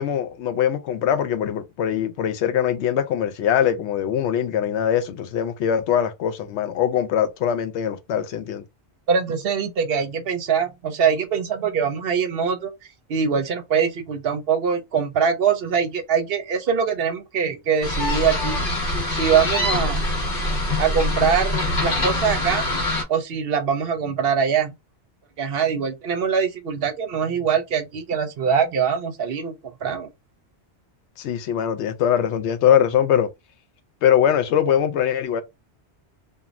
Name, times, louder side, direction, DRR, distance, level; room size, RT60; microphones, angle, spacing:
voice 1, 0.0-8.6 31.2-33.3 34.0-35.4, left 9 dB, 85° left, 0.9 m, -22 dB
voice 2, 9.1-12.7 13.1-18.6 19.1-20.1 20.8-22.6 23.1-24.7 25.4-29.5 29.8-30.1, right 6 dB, 65° right, 0.8 m, -23 dB
sound 1, 17.8-23.0, left 1 dB, 55° left, 0.9 m, -24 dB
2.5 x 2.3 x 3.0 m
omnidirectional pair, 1.1 m